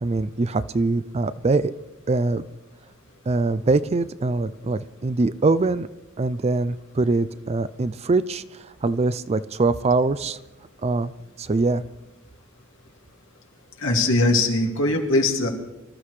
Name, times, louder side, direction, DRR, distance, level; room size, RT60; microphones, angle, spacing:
voice 1, 0.0-1.7 2.1-2.4 3.3-5.9 6.2-8.4 8.8-10.4 10.8-11.1 11.4-11.8, right 3 dB, 30° right, 14 dB, 0.4 m, -23 dB
voice 2, 13.8-15.5, left 2 dB, 65° left, 1 dB, 2.3 m, -21 dB
25.5 x 13.5 x 3.3 m, 0.98 s
head